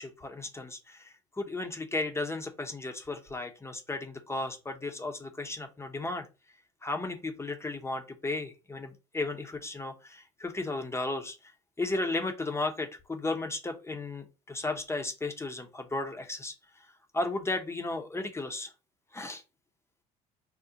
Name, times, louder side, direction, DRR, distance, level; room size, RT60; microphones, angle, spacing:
voice 1, 0.0-6.3 6.8-11.5 11.8-16.9 17.1-18.7 19.1-19.4, left 2 dB, 15° left, 5 dB, 0.7 m, -35 dB
3.7 x 2.1 x 2.7 m, 0.29 s
hypercardioid pair, 65°, 18 cm